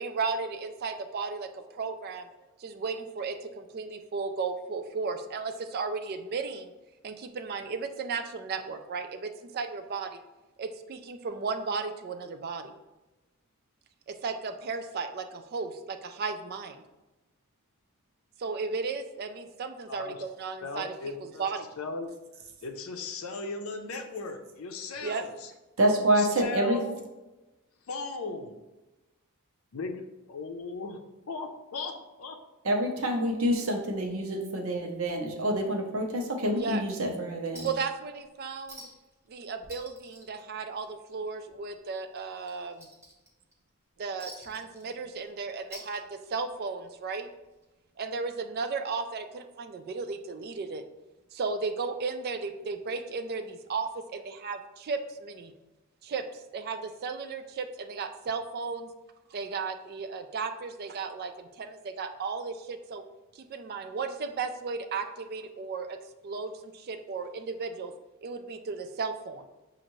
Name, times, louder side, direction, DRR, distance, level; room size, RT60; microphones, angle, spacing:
voice 1, 0.0-2.3 2.6-6.7 7.0-10.2 10.6-12.7 14.1-16.8 18.4-20.9 21.2-21.7 25.0-25.2 36.6-36.8 37.6-38.8 39.3-42.9 44.0-47.3 48.0-50.8 51.3-55.5 56.0-56.2 56.5-58.9 59.3-63.0 63.3-66.0 66.2-67.9 68.2-69.4, right 4 dB, 45° right, 8 dB, 0.3 m, -35 dB
voice 2, 19.9-20.2 20.6-21.5 21.8-22.1 22.6-25.5 26.2-27.0 27.9-28.5 29.7-32.4, left 3 dB, 70° left, 5 dB, 0.5 m, -37 dB
voice 3, 25.8-26.8 32.6-37.7, right 1 dB, 65° right, 1 dB, 0.8 m, -27 dB
Chink clink, 37.6-37.9 38.2-38.3 38.7-39.1 39.4-41.1 41.5-41.7 42.1-43.5 44.2-45.3 45.6-46.5 47.6-47.7, right 1 dB, 15° right, 0.8 m, -48 dB
6.3 x 2.5 x 3.0 m, 1.1 s
head